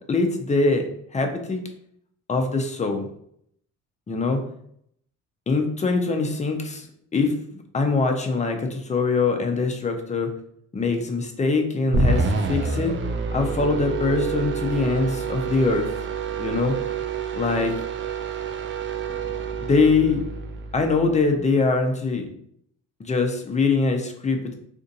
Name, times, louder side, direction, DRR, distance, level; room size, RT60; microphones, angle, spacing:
voice 1, 0.1-1.6 2.3-3.1 4.1-4.4 5.5-6.9 7.1-7.3 7.7-10.3 10.7-12.9 13.3-15.9 16.4-16.8 17.3-17.8 19.6-20.2 20.7-22.3 23.0-24.5, left 3 dB, 25° left, 4 dB, 0.6 m, -23 dB
sound 1, 11.9-21.3, right 5 dB, 40° right, 0.5 m, -28 dB
2.6 x 2.5 x 4.0 m, 0.69 s
cardioid pair, 90°, 30 cm